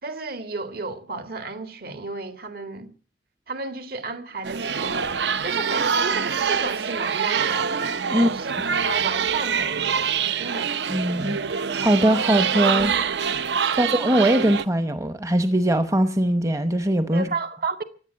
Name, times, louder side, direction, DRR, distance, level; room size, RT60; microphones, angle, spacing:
voice 1, 0.0-2.9 3.5-7.7 8.1-10.7 13.7-13.8 17.1-17.8, right 3 dB, 55° right, 2.0 m, -33 dB
sound 1, 4.4-14.6, right 6 dB, 70° right, 0.7 m, -25 dB
voice 2, 10.9-12.9 13.8-17.3, right 1 dB, 20° right, 0.8 m, -21 dB
16.0 x 10.5 x 8.2 m
head